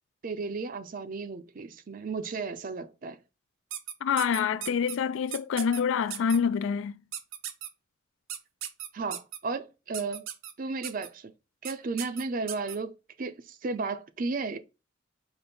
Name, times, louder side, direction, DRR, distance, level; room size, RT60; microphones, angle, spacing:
voice 1, 0.2-3.2 8.9-10.2 10.6-11.3 11.6-12.9 13.2-14.6, right 4 dB, 45° right, 0.5 m, -34 dB
sound 1, 3.7-5.0 5.3-5.8 6.1-6.4 7.1-7.7 8.3-9.4 9.9-10.5 10.8-11.1 11.6-11.7 12.0-12.8, right 9 dB, 85° right, 0.6 m, -36 dB
voice 2, 4.0-7.0, left 7 dB, 75° left, 0.3 m, -26 dB
5.1 x 2.1 x 4.3 m
head